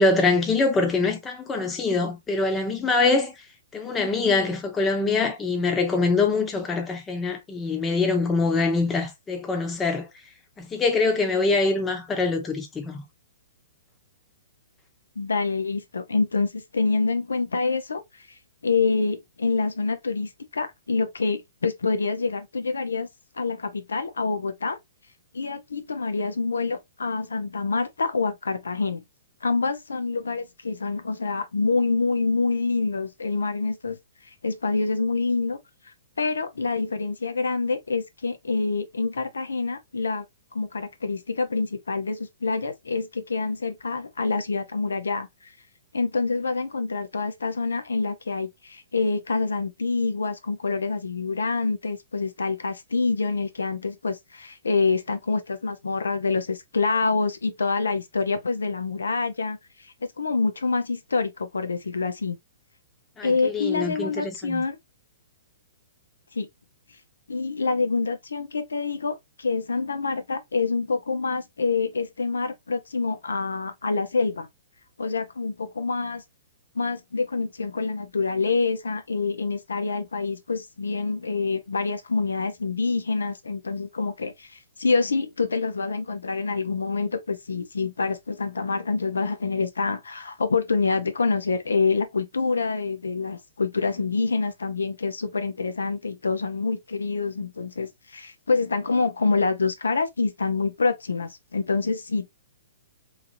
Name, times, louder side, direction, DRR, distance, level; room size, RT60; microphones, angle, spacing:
voice 1, 0.0-3.3 3.7-10.1 10.6-13.0 63.2-64.6, left 3 dB, 15° left, 0.8 m, -24 dB
voice 2, 15.2-23.1 23.3-24.8 25.3-29.0 29.4-34.0 34.2-35.6 35.8-40.2 40.5-45.5 45.9-62.4 63.2-64.8 66.3-66.5 67.3-74.5 75.0-76.2 76.7-102.3, left 4 dB, 90° left, 0.5 m, -26 dB
3.1 x 2.4 x 2.5 m
hypercardioid pair, 130°, 0 cm